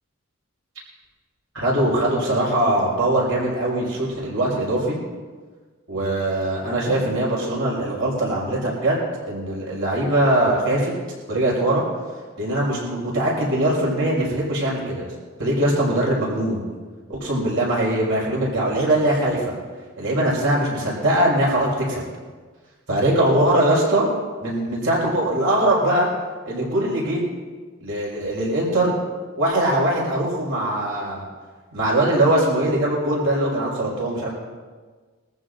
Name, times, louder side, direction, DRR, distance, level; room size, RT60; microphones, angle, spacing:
voice 1, 1.5-5.0 5.9-9.0 9.3-10.9 11.3-11.8 12.4-15.1 15.4-16.6 17.1-19.5 20.0-22.0 22.9-24.1 24.4-26.1 26.5-27.2 27.8-29.0 29.4-31.2 31.7-34.3, right 1 dB, 80° right, -5 dB, 5.7 m, -21 dB
24.0 x 15.0 x 2.7 m, 1.4 s
head